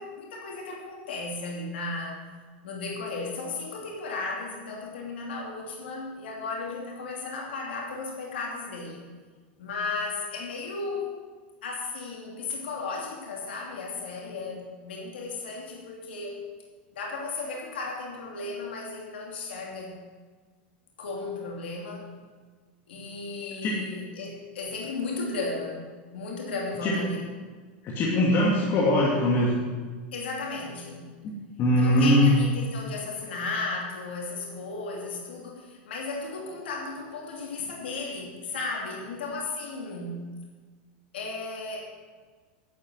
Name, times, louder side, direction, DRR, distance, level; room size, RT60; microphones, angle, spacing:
voice 1, 0.0-2.3 2.6-9.1 9.6-11.2 11.6-16.5 16.9-20.0 21.0-22.1 22.9-27.2 30.1-31.1 31.8-40.3 41.1-41.9, left 3 dB, 85° left, -1 dB, 2.8 m, -35 dB
voice 2, 27.8-29.6 31.2-32.3, left 1 dB, 40° left, -4 dB, 2.5 m, -22 dB
11.5 x 7.2 x 8.0 m, 1.5 s
hypercardioid pair, 115°, 6 cm